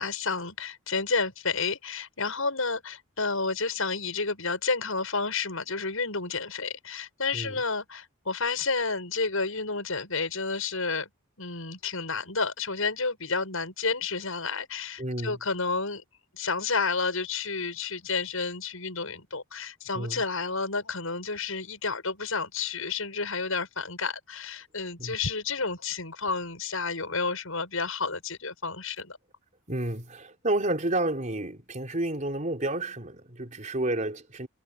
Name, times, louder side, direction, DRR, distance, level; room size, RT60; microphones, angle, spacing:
voice 1, 0.0-11.1 11.4-16.0 16.3-29.2, left 4 dB, 75° left, 7.8 m, -30 dB
voice 2, 15.0-15.4 19.9-20.2 25.0-25.2 29.7-34.5, right 1 dB, 35° right, 3.7 m, -30 dB
head